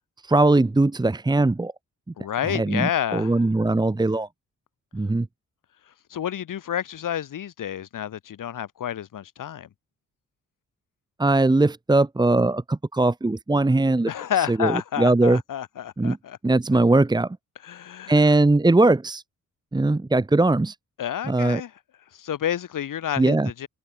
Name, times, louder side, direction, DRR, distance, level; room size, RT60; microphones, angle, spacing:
voice 1, 0.2-1.7 2.4-4.3 4.9-5.3 11.2-14.1 14.4-15.4 16.0-16.2 16.4-17.4 18.1-19.2 19.7-20.7 21.3-21.6 23.2-23.5, right 2 dB, 15° right, 1.4 m, -20 dB
voice 2, 2.2-3.5 6.1-9.7 14.1-16.4 17.6-18.2 21.0-21.7 22.1-23.7, left 10 dB, 90° left, 5.2 m, -29 dB
wide cardioid pair, 140°, 31 cm